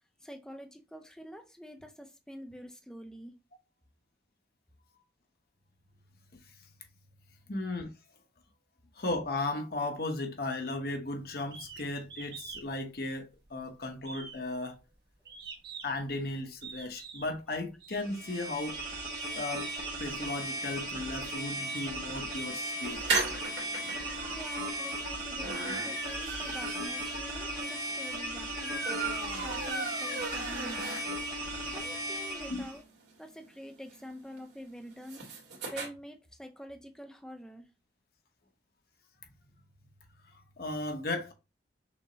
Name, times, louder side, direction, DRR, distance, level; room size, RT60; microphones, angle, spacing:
voice 1, 0.2-3.3 24.3-31.0 31.7-32.8 33.2-35.2 35.7-37.7, equal, 5° left, 0.5 m, -46 dB
voice 2, 7.5-7.9 9.0-14.7 15.8-18.8 19.3-19.7 20.0-23.0 23.8-24.0 31.7-31.8 32.5-32.7 40.6-41.3, left 2 dB, 55° left, 1.0 m, -35 dB
sound 1, 11.5-11.8 12.1-12.7 13.0-13.6 14.0-16.1 16.6-17.3 17.8-18.0 18.6-20.0 20.8-20.9 21.4-21.9 22.3-23.0 23.5-24.0 24.6-24.7 25.2-27.1, right 6 dB, 60° right, 1.2 m, -47 dB
sound 2, 18.0-32.8, right 1 dB, 45° right, 1.4 m, -37 dB
sound 3, 22.8-31.4 31.8-31.9 32.1-32.2 32.5-35.9, right 3 dB, 90° right, 1.8 m, -37 dB
6.1 x 2.2 x 3.9 m
head